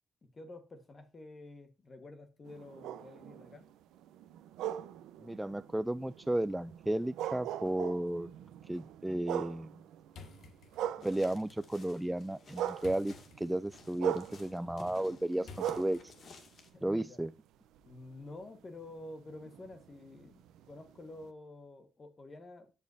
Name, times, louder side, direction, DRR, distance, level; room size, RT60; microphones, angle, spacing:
voice 1, 0.3-3.7 16.7-17.2 17.8-22.7, left 2 dB, 35° left, 1.3 m, -50 dB
sound 1, 2.4-11.7 12.0-17.3 17.7-21.3, right 11 dB, 85° right, 0.7 m, -42 dB
voice 2, 5.2-8.3 8.7-9.7 11.0-16.1 16.8-17.3, right 1 dB, 10° right, 0.3 m, -34 dB
sound 2, 10.1-16.6, left 4 dB, 70° left, 1.7 m, -56 dB
sound 3, 11.0-16.7, left 4 dB, 55° left, 2.0 m, -55 dB
13.0 x 5.4 x 2.6 m
cardioid pair, 90°, 0 cm